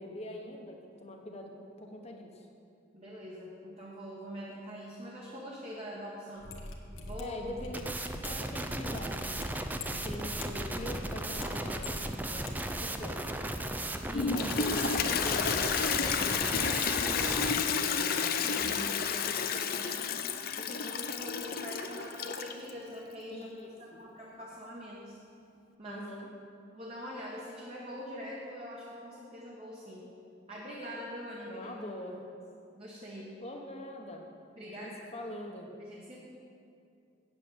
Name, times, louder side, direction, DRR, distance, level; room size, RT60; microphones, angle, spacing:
voice 1, 0.0-2.5 7.2-7.9 8.2-13.2 14.3-19.9 23.3-24.0 25.8-26.3 31.5-32.2 33.4-34.3 34.6-35.7, left 1 dB, 30° left, 2 dB, 1.0 m, -44 dB
voice 2, 2.9-6.5 7.0-7.4 14.1-14.5 18.4-18.7 20.6-23.5 24.0-25.2 25.8-26.1 26.7-30.1 30.5-31.7 32.7-33.4 34.6-35.0 35.9-36.2, equal, 30° right, -4 dB, 1.1 m, -43 dB
Mechanisms, 6.4-12.5 12.8-12.9, left 2 dB, 85° left, 1.1 m, -44 dB
sound 1, 7.7-17.5, right 1 dB, 10° right, 0.4 m, -36 dB
Toilet flush, 14.1-22.7, left 6 dB, 50° left, 0.5 m, -31 dB
8.2 x 7.3 x 8.0 m, 2.5 s
head